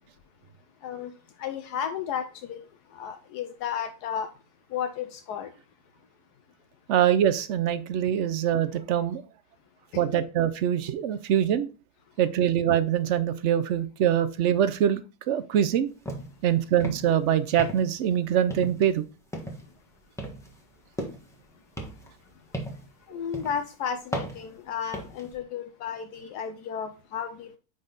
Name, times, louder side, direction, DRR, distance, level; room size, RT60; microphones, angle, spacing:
voice 1, 0.8-4.3 4.7-5.5 9.9-10.0 22.0-22.1 22.6-22.7 23.1-27.6, left 8 dB, 80° left, 1.2 m, -34 dB
voice 2, 6.9-9.2 10.0-11.7 12.2-15.0 15.3-15.9 16.4-19.0, right 10 dB, 70° right, 0.7 m, -24 dB
sound 1, 16.0-16.4 16.7-17.2 17.6-18.1 18.5-19.0 19.3-19.7 20.2-21.4 21.8-22.9 23.3-23.6 24.1-25.3, right 1 dB, ahead, 1.1 m, -36 dB
8.9 x 3.9 x 3.9 m
omnidirectional pair, 1.7 m